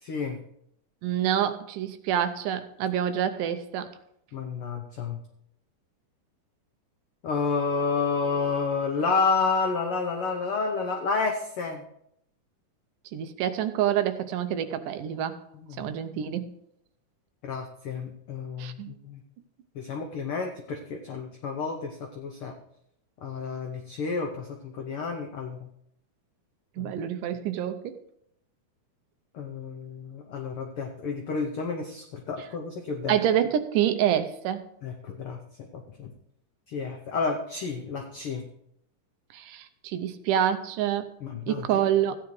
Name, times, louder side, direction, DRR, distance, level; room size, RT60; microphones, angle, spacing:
voice 1, 0.0-0.4 4.3-5.2 7.2-11.8 15.5-15.9 17.4-19.2 19.7-22.5 23.2-25.7 26.8-26.9 29.3-33.2 34.8-35.4 35.7-36.1 36.7-38.4 41.2-41.7, left 4 dB, 85° left, 3 dB, 1.2 m, -30 dB
voice 2, 1.0-3.9 13.1-15.4 15.8-16.5 18.6-18.9 26.8-28.0 33.1-34.7 39.3-41.1 41.5-42.2, right 10 dB, 85° right, 10 dB, 2.3 m, -27 dB
15.0 x 9.4 x 3.2 m, 0.74 s
omnidirectional pair, 3.7 m